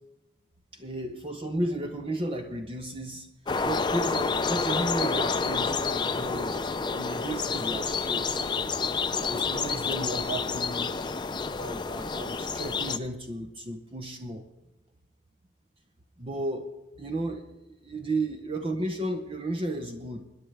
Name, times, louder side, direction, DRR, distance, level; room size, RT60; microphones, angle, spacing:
voice 1, 0.7-3.3 3.6-8.5 9.2-11.0 11.6-14.5 16.2-16.7 17.0-17.6 17.8-20.2, right 1 dB, 30° right, 5 dB, 0.8 m, -33 dB
sound 1, 3.5-13.0, left 4 dB, 25° left, 0.4 m, -29 dB
25.5 x 10.5 x 3.4 m, 1.0 s
head